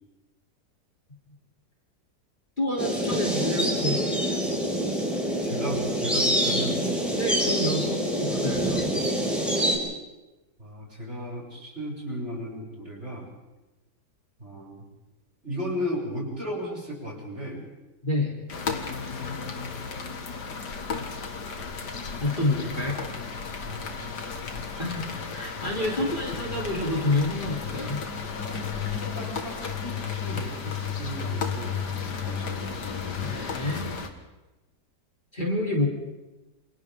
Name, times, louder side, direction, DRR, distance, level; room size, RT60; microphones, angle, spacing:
voice 1, 2.6-4.1 7.1-8.8 18.0-18.3 22.2-23.0 24.8-25.1 25.3-28.0 33.2-33.9 35.3-35.9, left 2 dB, 30° left, -3 dB, 3.4 m, -28 dB
sound 1, 2.8-9.8, right 1 dB, ahead, 5.8 m, -26 dB
voice 2, 5.4-6.8 10.6-13.3 14.4-14.8 15.4-17.6 23.6-24.2 28.9-32.8, equal, 40° right, -4 dB, 8.2 m, -35 dB
sound 2, 18.5-34.1, left 6 dB, 80° left, 2.3 m, -33 dB
28.5 x 27.5 x 3.7 m, 1.1 s
omnidirectional pair, 1.8 m